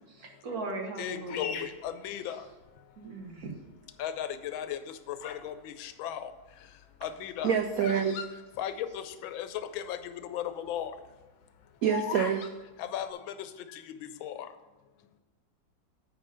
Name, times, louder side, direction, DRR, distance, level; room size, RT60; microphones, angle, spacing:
voice 1, 0.1-1.6 2.2-2.3 3.0-3.5, right 2 dB, 55° right, 2 dB, 1.6 m, -38 dB
voice 2, 1.0-2.4 4.0-4.8 5.1-6.3 7.0-7.5 8.6-10.9 12.8-13.8 14.2-14.5, left 10 dB, 85° left, 11 dB, 1.4 m, -36 dB
Bird vocalization bird call bird song, 1.3-2.8 3.4-3.9 4.6-5.5 5.8-9.3 9.6-9.7 9.8-10.2 10.6-12.5, left 8 dB, 65° left, 1.1 m, -40 dB
voice 3, 7.4-8.2 11.8-12.4, right 7 dB, 85° right, 6 dB, 0.7 m, -26 dB
8.7 x 5.0 x 5.5 m, 1.2 s
omnidirectional pair, 2.1 m